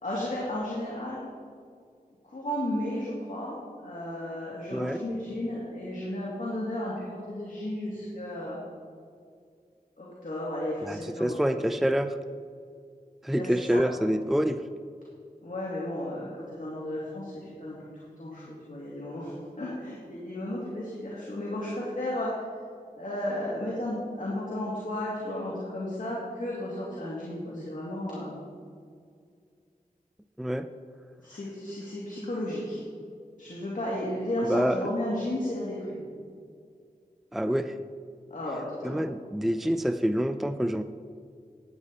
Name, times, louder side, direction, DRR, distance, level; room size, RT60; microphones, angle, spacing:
voice 1, 0.0-1.3 2.3-3.6 3.8-8.6 10.0-11.4 13.3-13.8 15.4-17.8 18.2-22.4 23.0-28.4 31.2-32.8 33.4-36.1 38.3-39.0, left 1 dB, 65° left, -6 dB, 2.5 m, -33 dB
voice 2, 10.8-12.2 13.2-14.6 30.4-30.7 34.5-34.8 37.3-37.7 38.8-40.8, equal, ahead, 9 dB, 0.4 m, -27 dB
13.5 x 9.7 x 4.2 m, 2.2 s
wide cardioid pair, 60°, 15 cm